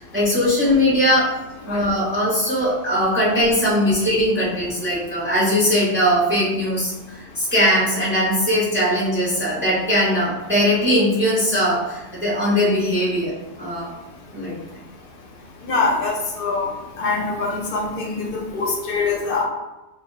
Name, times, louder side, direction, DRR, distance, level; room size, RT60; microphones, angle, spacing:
voice 1, 0.1-1.4 1.6-13.9 14.3-14.6, equal, 15° right, -7 dB, 0.6 m, -20 dB
voice 2, 15.7-16.7 17.0-19.4, left 3 dB, 60° left, 0 dB, 0.7 m, -23 dB
2.1 x 2.1 x 3.7 m, 1.1 s
omnidirectional pair, 1.1 m